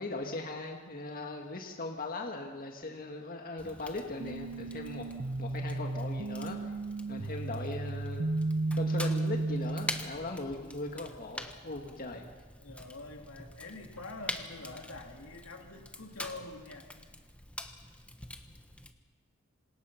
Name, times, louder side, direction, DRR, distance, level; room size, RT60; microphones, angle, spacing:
voice 1, 0.0-5.1 5.4-6.6 7.1-8.4 8.7-12.3, left 2 dB, 45° left, 2 dB, 1.9 m, -39 dB
Fire, 3.6-18.9, left 1 dB, 5° left, 1.3 m, -45 dB
sound 1, 4.2-10.2, right 2 dB, 50° right, 0.6 m, -34 dB
voice 2, 12.6-16.9, left 2 dB, 80° left, 2 dB, 3.2 m, -46 dB
27.0 x 26.5 x 5.8 m, 1.5 s
head